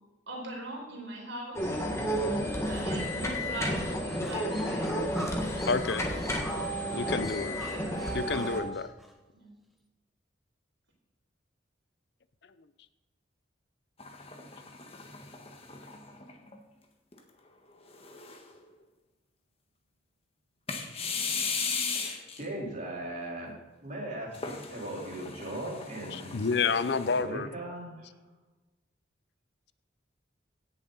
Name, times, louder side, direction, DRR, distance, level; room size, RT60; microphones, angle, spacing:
voice 1, 0.3-1.9 2.7-5.1 7.6-8.3 9.3-9.5, right 1 dB, 80° right, -2 dB, 4.5 m, -41 dB
sound 1, 1.6-8.6, equal, 15° left, 1.7 m, -31 dB
sound 2, 4.1-9.1, equal, ahead, 1.1 m, -45 dB
voice 2, 5.7-6.1 6.9-7.6 8.1-8.9 26.1-27.5, left 5 dB, 60° left, 13 dB, 0.5 m, -29 dB
sound 3, 14.0-16.6 17.1-17.2 17.9-18.6 20.7-22.4 24.3-27.2, left 5 dB, 30° left, 1.4 m, -37 dB
voice 3, 21.9-26.4 27.2-28.1, right 1 dB, 40° right, -3 dB, 3.7 m, -39 dB
17.0 x 7.3 x 4.0 m, 1.2 s
head